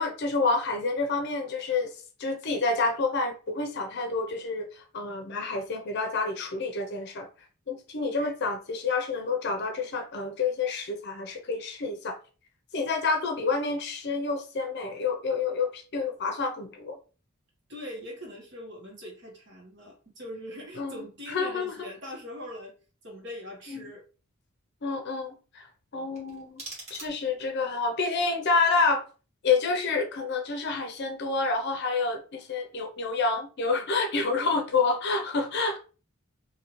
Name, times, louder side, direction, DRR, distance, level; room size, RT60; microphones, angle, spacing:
voice 1, 0.0-1.9 2.2-7.3 7.7-12.2 12.7-17.0 20.8-21.7 23.7-23.9 24.8-25.7 25.9-26.6 26.9-29.0 29.4-35.8, left 4 dB, 55° left, 0.5 m, -28 dB
voice 2, 17.7-22.7 23.0-24.0, left 1 dB, 60° right, 1.4 m, -41 dB
sound 1, 26.1-27.6, right 2 dB, 35° right, 1.2 m, -44 dB
2.7 x 2.7 x 3.0 m
head